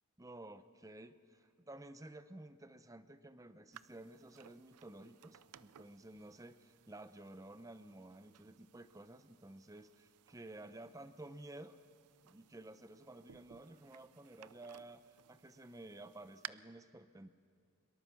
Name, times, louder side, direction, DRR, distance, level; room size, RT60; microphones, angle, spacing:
voice 1, 0.2-11.8 12.2-17.3, right 2 dB, 15° right, 12 dB, 0.7 m, -53 dB
sound 1, 3.7-16.5, right 11 dB, 90° right, 0.5 m, -58 dB
23.0 x 22.0 x 7.1 m, 2.2 s
head